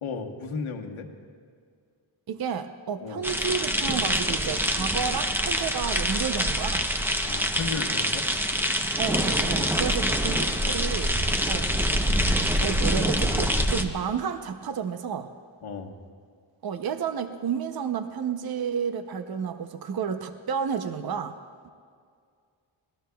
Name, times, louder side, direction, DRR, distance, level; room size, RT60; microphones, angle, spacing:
voice 1, 0.0-1.1 3.0-3.2 7.2-8.3 15.6-16.0, left 5 dB, 80° left, 3 dB, 1.3 m, -34 dB
voice 2, 2.3-6.9 9.0-11.2 11.5-11.7 12.6-15.3 16.6-21.4, right 7 dB, 50° right, 8 dB, 0.7 m, -31 dB
sound 1, 3.2-13.8, equal, 5° right, 0.7 m, -25 dB
24.5 x 18.5 x 2.3 m, 2.2 s
wide cardioid pair, 130°, 48 cm